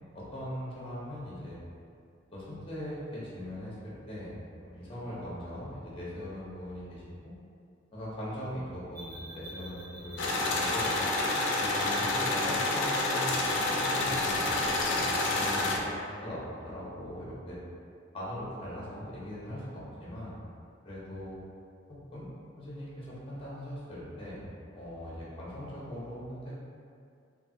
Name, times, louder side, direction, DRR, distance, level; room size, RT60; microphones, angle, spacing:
voice 1, 0.1-1.6 2.3-4.3 4.6-7.3 7.9-11.0 11.6-17.6 18.1-20.4 20.8-21.4 21.9-22.3 22.6-24.4 24.7-26.5, equal, 30° left, -7 dB, 0.8 m, -40 dB
sound 1, 9.0-15.0, right 1 dB, 50° right, 0.8 m, -46 dB
sound 2, 10.2-15.8, left 2 dB, 65° left, 0.4 m, -28 dB
3.2 x 2.4 x 2.6 m, 2.4 s
head